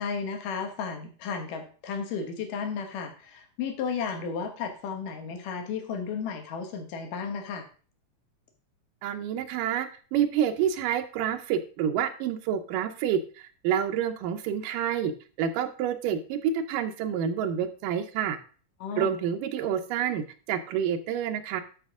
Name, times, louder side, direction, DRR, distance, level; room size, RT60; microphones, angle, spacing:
voice 1, 0.0-7.7 18.8-19.2, left 6 dB, 80° left, 5 dB, 2.9 m, -33 dB
voice 2, 9.0-18.4 19.0-21.6, right 9 dB, 85° right, 8 dB, 2.4 m, -28 dB
11.5 x 5.0 x 3.6 m, 0.39 s
omnidirectional pair, 3.8 m